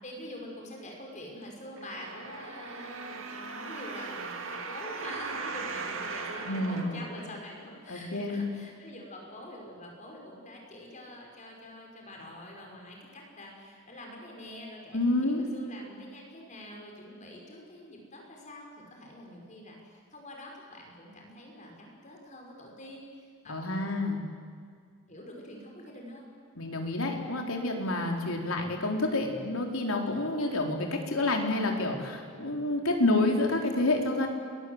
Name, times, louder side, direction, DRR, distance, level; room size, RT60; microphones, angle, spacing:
voice 1, 0.0-24.2 25.1-26.3, left 1 dB, 35° left, 0 dB, 5.7 m, -46 dB
sound 1, 1.8-7.7 8.3-8.4, right 4 dB, 70° right, 2.3 m, -39 dB
voice 2, 6.5-6.9 7.9-8.5 14.9-15.4 23.5-24.2 26.6-34.3, left 2 dB, 85° left, 2 dB, 4.1 m, -28 dB
29.5 x 22.5 x 8.1 m, 2.1 s
head